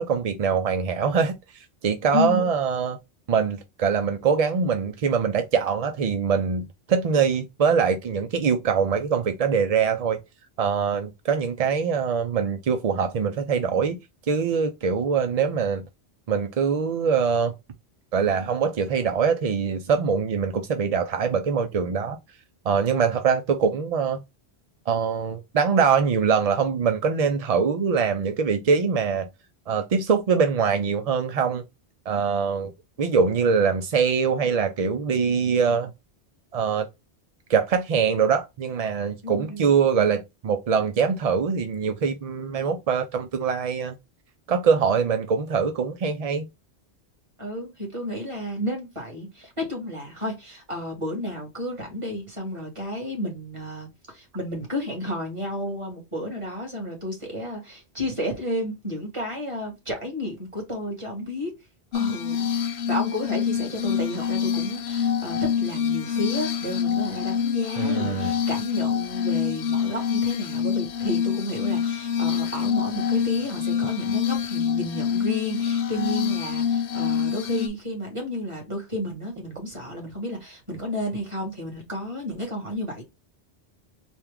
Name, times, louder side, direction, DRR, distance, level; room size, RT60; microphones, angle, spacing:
voice 1, 0.0-3.0 3.3-10.2 10.6-14.0 14.3-15.8 16.3-17.5 18.1-22.2 22.7-24.2 24.9-29.3 29.7-31.6 32.1-32.7 33.0-35.9 36.5-36.9 37.5-44.0 44.5-46.4 67.8-68.3, right 6 dB, 55° right, 0.4 m, -23 dB
voice 2, 39.2-39.8 47.4-61.5 61.9-62.5 62.9-83.0, left 1 dB, 30° right, 1.8 m, -32 dB
Glass, 61.9-77.7, left 7 dB, 80° left, 0.9 m, -26 dB
4.3 x 2.3 x 3.4 m
omnidirectional pair, 1.1 m